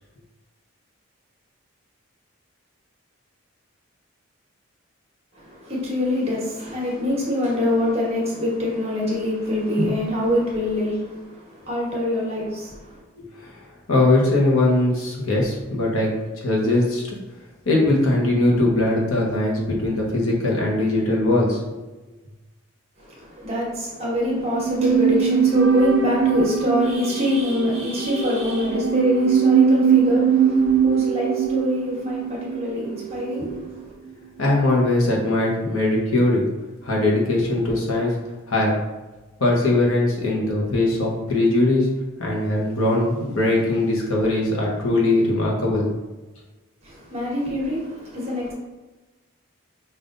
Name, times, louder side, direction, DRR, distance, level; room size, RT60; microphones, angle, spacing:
voice 1, 5.3-13.0 23.0-33.9 46.8-48.5, left 1 dB, 30° right, -4 dB, 1.1 m, -25 dB
voice 2, 13.2-17.2 17.6-21.8 34.4-36.4 36.8-38.2 38.5-38.7 39.4-41.9 42.2-45.9, left 2 dB, 80° left, -3 dB, 1.0 m, -21 dB
sound 1, 24.5-33.8 34.1-34.2, right 7 dB, 60° right, 0.4 m, -21 dB
5.2 x 2.6 x 2.5 m, 1.1 s
head